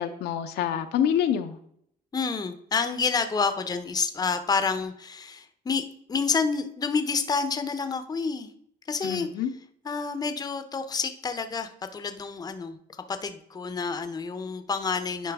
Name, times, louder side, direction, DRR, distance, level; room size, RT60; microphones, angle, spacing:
voice 1, 0.0-1.6 9.0-9.5, left 9 dB, 75° left, 7 dB, 0.6 m, -26 dB
voice 2, 2.1-5.8 6.1-8.5 8.9-9.4 9.8-12.8 13.1-15.3, left 5 dB, 20° left, 9 dB, 0.7 m, -28 dB
10.0 x 4.4 x 3.5 m, 0.68 s
cardioid pair, 110°, 17 cm